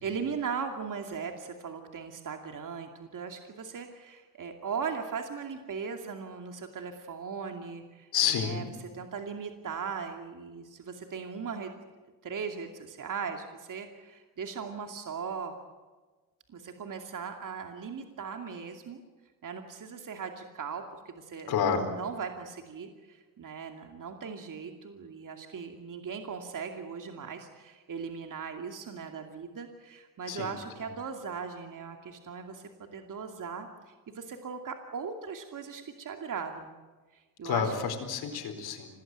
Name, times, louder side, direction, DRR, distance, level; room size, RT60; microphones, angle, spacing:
voice 1, 0.0-11.7 12.2-15.5 16.5-19.0 19.4-36.7 37.1-37.7, right 6 dB, 55° right, 5 dB, 2.6 m, -38 dB
voice 2, 8.1-8.7 21.5-21.9 30.3-30.5 37.4-38.9, left 7 dB, 85° left, 5 dB, 4.5 m, -29 dB
26.5 x 19.0 x 9.3 m, 1.3 s
cardioid pair, 75°, 37 cm